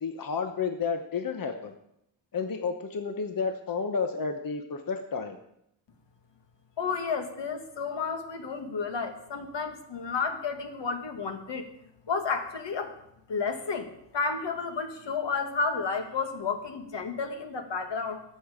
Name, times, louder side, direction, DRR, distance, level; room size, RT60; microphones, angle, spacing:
voice 1, 0.0-1.7 2.3-5.4, left 5 dB, 45° left, 6 dB, 1.1 m, -31 dB
voice 2, 6.8-11.7 12.1-12.9 13.3-18.2, left 5 dB, 70° left, 6 dB, 1.9 m, -31 dB
21.5 x 7.8 x 5.1 m, 0.76 s
wide cardioid pair, 175°, 45 cm